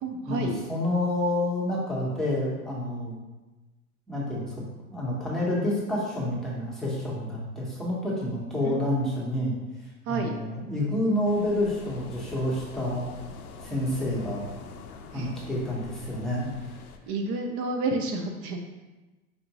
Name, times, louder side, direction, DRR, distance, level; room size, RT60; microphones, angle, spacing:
voice 1, 0.0-0.6 8.6-9.2 10.1-10.4 15.1-15.3 17.1-18.6, right 2 dB, 30° right, 3 dB, 0.4 m, -30 dB
voice 2, 0.7-3.2 4.1-4.5 4.9-9.5 9.8-13.1 13.6-14.5 15.1-16.7, left 1 dB, ahead, -7 dB, 1.0 m, -28 dB
sound 1, 11.2-17.0, left 5 dB, 85° left, 0.5 m, -44 dB
4.7 x 2.5 x 2.9 m, 1.1 s
hypercardioid pair, 105°, 44 cm